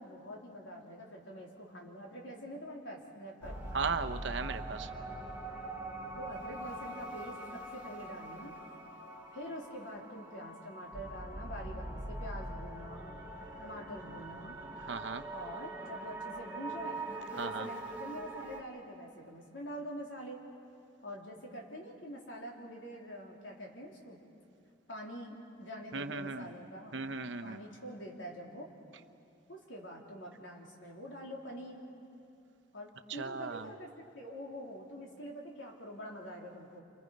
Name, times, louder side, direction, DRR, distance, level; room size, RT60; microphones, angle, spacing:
voice 1, 0.0-3.6 6.2-8.5 9.3-13.2 13.6-14.6 15.3-17.0 17.3-20.4 21.0-24.2 24.9-27.0 27.4-28.7 29.5-31.8 32.7-36.8, equal, 85° left, -1 dB, 3.6 m, -45 dB
sound 1, 3.4-18.6, right 2 dB, 10° right, 2.8 m, -43 dB
voice 2, 3.7-4.9 14.9-15.2 17.4-17.7 25.9-26.5 26.9-27.6 33.1-33.7, right 4 dB, 70° right, 8 dB, 0.9 m, -36 dB
29.5 x 27.0 x 5.4 m, 2.5 s
head